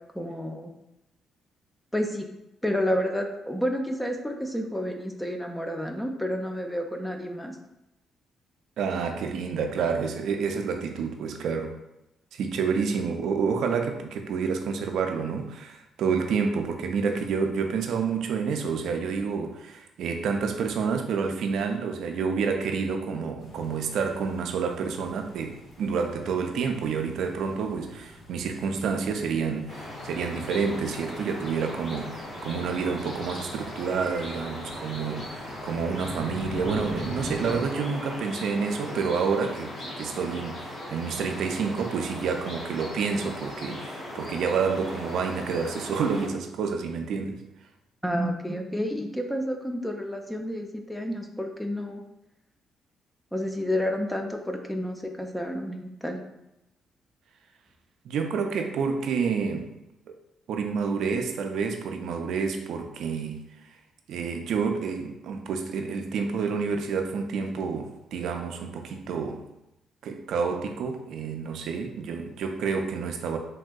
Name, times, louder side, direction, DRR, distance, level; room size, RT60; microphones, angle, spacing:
voice 1, 0.1-0.7 1.9-2.3 2.6-7.6 48.0-52.0 53.3-56.2, equal, 5° left, 0.4 m, -30 dB
voice 2, 8.8-11.8 12.3-47.4 58.0-59.7 60.5-63.5 64.1-69.4 70.0-73.4, right 5 dB, 75° right, 0.3 m, -29 dB
sound 1, 23.4-37.7, equal, 75° left, 0.7 m, -43 dB
sound 2, 29.7-46.3, left 1 dB, 45° left, 1.2 m, -38 dB
3.3 x 2.6 x 2.2 m
cardioid pair, 90°, 0 cm